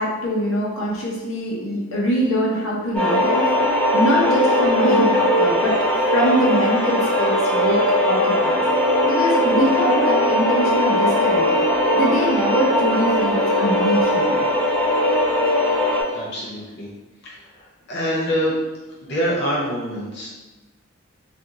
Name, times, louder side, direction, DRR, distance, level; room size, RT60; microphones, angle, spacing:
voice 1, 0.0-5.7 6.1-8.6 9.0-11.5 11.9-14.4, equal, 85° left, -4 dB, 0.9 m, -23 dB
sound 1, 2.9-16.0, left 1 dB, 5° left, 0.9 m, -19 dB
voice 2, 16.1-16.9 17.2-18.6 19.0-20.3, equal, 55° left, -6 dB, 0.7 m, -25 dB
2.8 x 2.6 x 3.6 m, 1.1 s
head